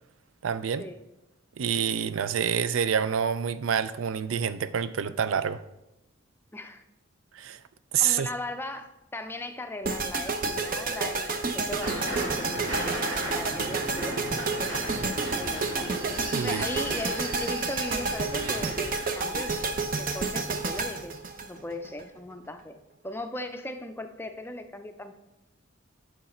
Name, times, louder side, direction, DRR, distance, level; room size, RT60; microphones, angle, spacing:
voice 1, 0.4-0.9 1.6-5.6 7.4-7.6 7.9-8.3 16.3-16.6, right 7 dB, 80° right, 14 dB, 0.4 m, -27 dB
voice 2, 6.5-6.8 8.0-14.2 15.4-15.9 16.4-21.2 21.5-22.8 23.0-25.1, left 1 dB, 10° left, 7 dB, 0.5 m, -38 dB
sound 1, 9.8-22.0, right 3 dB, 45° right, 0.7 m, -30 dB
sound 2, 11.8-19.1, right 1 dB, 60° right, 1.5 m, -36 dB
8.1 x 6.5 x 4.3 m, 0.91 s
head